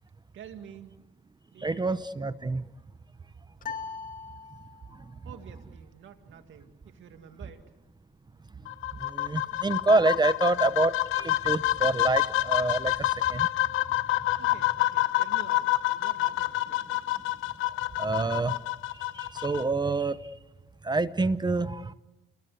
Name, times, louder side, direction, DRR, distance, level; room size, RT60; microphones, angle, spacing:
voice 1, 0.3-0.9 1.5-1.8 5.2-7.7 14.4-15.7 16.0-17.0, right 8 dB, 75° right, 7 dB, 2.0 m, -48 dB
voice 2, 1.6-2.6 9.0-13.5 18.0-18.6 19.1-20.2 20.8-21.9, right 3 dB, 20° right, 14 dB, 0.8 m, -27 dB
sound 1, 3.6-5.1, left 5 dB, 45° left, 1.3 m, -39 dB
sound 2, 8.7-19.6, left 16 dB, 90° left, 1.0 m, -28 dB
29.5 x 21.0 x 8.3 m, 1.1 s
cardioid pair, 90°, 20 cm